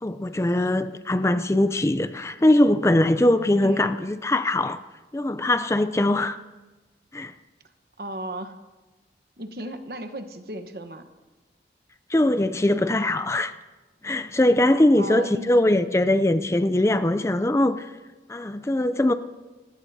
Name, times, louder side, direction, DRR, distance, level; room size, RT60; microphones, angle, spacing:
voice 1, 0.0-4.8 5.1-6.4 7.1-7.3 12.1-13.5 14.0-17.9 18.3-19.1, left 1 dB, 15° left, 0.4 m, -21 dB
voice 2, 3.6-4.0 8.0-8.6 9.4-11.1 15.0-15.5, right 1 dB, 60° right, 1.1 m, -35 dB
30.0 x 15.5 x 2.8 m
head